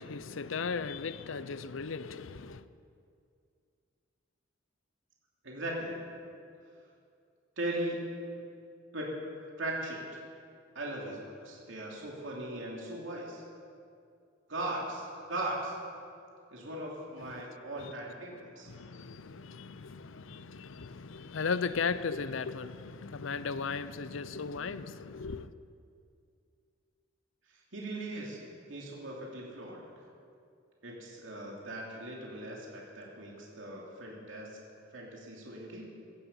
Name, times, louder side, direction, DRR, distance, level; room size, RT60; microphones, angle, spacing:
voice 1, 0.0-2.7 17.2-17.4 17.8-17.9 18.7-25.5, left 5 dB, 75° left, 0.6 m, -36 dB
voice 2, 5.4-6.0 7.6-8.3 8.9-10.2 10.7-13.4 14.5-15.8 16.5-18.7 27.7-28.4 28.7-29.8 30.8-34.5 34.9-35.8, right 1 dB, 70° right, 3.0 m, -38 dB
17.0 x 14.5 x 5.6 m
head